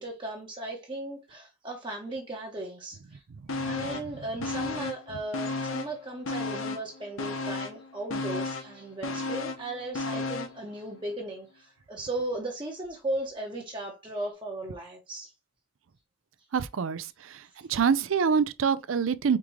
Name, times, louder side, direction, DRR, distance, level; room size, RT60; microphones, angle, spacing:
voice 1, 0.0-3.2 3.7-15.3, right 1 dB, 25° right, 0.9 m, -36 dB
sound 1, 3.5-4.1 4.4-6.0 6.3-10.6 11.0-11.1, left 3 dB, 90° left, 0.8 m, -33 dB
voice 2, 16.5-19.4, right 6 dB, 80° right, 0.5 m, -26 dB
4.8 x 3.7 x 3.0 m
head